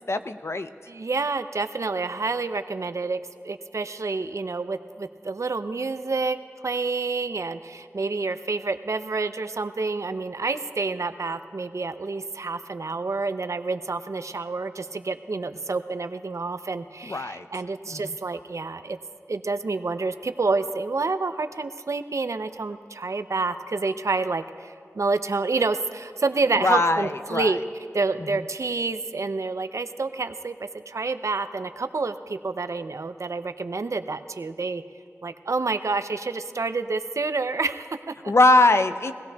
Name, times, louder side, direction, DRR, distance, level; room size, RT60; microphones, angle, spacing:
voice 1, 0.1-0.7 17.0-17.5 17.9-18.1 26.6-27.5 38.3-39.1, left 2 dB, 55° left, 10 dB, 0.6 m, -21 dB
voice 2, 0.9-3.2 3.4-6.4 6.6-19.0 19.3-27.6 27.9-34.8 35.2-38.3, right 3 dB, 65° right, 10 dB, 0.5 m, -28 dB
23.0 x 17.0 x 2.3 m, 2.3 s
wide cardioid pair, 50°, 6 cm